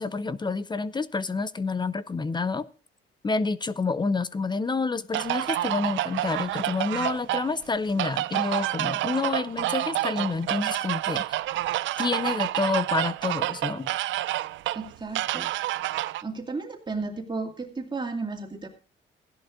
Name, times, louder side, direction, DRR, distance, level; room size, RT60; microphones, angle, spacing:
voice 1, 0.0-2.7 3.2-11.4 12.0-13.9, left 4 dB, 20° left, 16 dB, 0.6 m, -28 dB
sound 1, 5.1-16.2, right 15 dB, 75° right, 0.4 m, -29 dB
voice 2, 14.7-15.5 16.2-18.7, right 3 dB, 25° right, 3 dB, 2.4 m, -33 dB
16.0 x 11.0 x 2.5 m, 0.34 s
cardioid pair, 90°, 20 cm